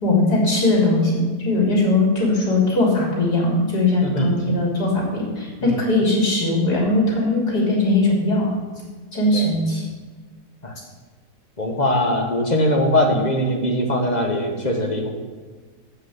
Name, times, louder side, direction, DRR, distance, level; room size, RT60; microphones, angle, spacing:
voice 1, 0.0-8.5 9.1-9.8, left 2 dB, 80° left, -3 dB, 3.9 m, -20 dB
voice 2, 4.0-4.3 5.6-5.8 9.3-9.5 10.6-10.7 11.6-15.2, left 1 dB, 30° left, 2 dB, 1.2 m, -21 dB
7.6 x 6.6 x 7.9 m, 1.4 s
omnidirectional pair, 1.7 m